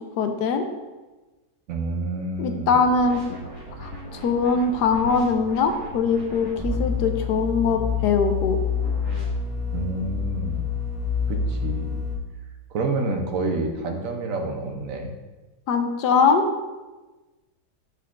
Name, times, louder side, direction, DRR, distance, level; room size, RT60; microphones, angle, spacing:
voice 1, 0.2-0.6 2.4-3.2 3.8-8.6 15.7-16.5, left 5 dB, 75° left, 6 dB, 1.2 m, -22 dB
voice 2, 1.7-2.8 9.7-10.7 11.3-12.0 12.7-15.1, right 3 dB, 60° right, 3 dB, 1.0 m, -28 dB
sound 1, 2.8-6.8 8.8-9.2, equal, 20° right, 2.2 m, -38 dB
sound 2, 6.6-12.1, left 6 dB, 15° left, 0.7 m, -27 dB
7.9 x 6.6 x 2.5 m, 1.2 s
omnidirectional pair, 1.9 m